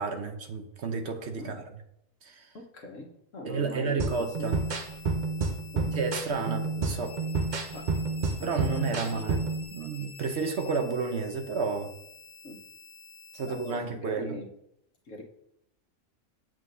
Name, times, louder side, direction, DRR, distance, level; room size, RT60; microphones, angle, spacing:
voice 1, 0.0-1.6 2.2-2.5 3.4-4.6 6.0-7.1 8.4-11.9 13.3-14.4, right 4 dB, 60° right, 6 dB, 1.0 m, -31 dB
voice 2, 2.5-4.6 5.7-5.9 6.4-6.6 7.7-7.9 8.4-9.2 12.4-12.6 13.4-14.5 15.0-15.2, left 1 dB, 75° left, 0 dB, 1.6 m, -42 dB
sound 1, 4.0-9.6, right 3 dB, 45° right, 0.7 m, -30 dB
sound 2, 4.1-13.7, left 5 dB, 40° left, 1.8 m, -49 dB
7.8 x 7.6 x 2.7 m, 0.76 s
omnidirectional pair, 1.4 m